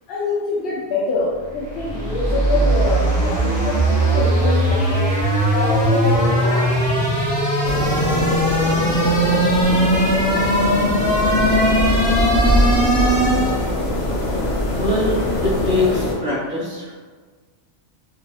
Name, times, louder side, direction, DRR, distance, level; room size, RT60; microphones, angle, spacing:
voice 1, 0.1-5.0 5.5-6.7, left 3 dB, 60° left, -8 dB, 0.7 m, -25 dB
sound 1, 1.5-13.7, right 1 dB, 10° left, 1.3 m, -19 dB
sound 2, 7.6-16.1, left 1 dB, 85° left, 1.0 m, -22 dB
voice 2, 14.7-16.9, left 2 dB, 10° right, -9 dB, 0.8 m, -22 dB
2.7 x 2.4 x 2.3 m, 1.4 s
omnidirectional pair, 1.2 m